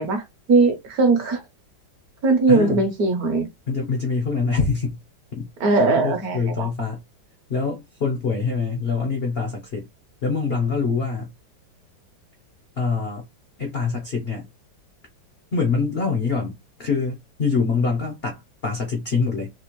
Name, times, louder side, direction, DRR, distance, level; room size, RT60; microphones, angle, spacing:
voice 1, 0.0-1.4 2.2-3.5 5.6-6.7, right 3 dB, 60° right, 1.1 m, -20 dB
voice 2, 2.5-2.8 3.7-5.0 5.3-5.5 6.0-7.0 7.5-9.9 10.2-11.3 12.8-13.3 13.6-14.4 15.5-19.5, left 4 dB, 60° left, 0.6 m, -25 dB
4.1 x 2.5 x 3.0 m
omnidirectional pair, 2.1 m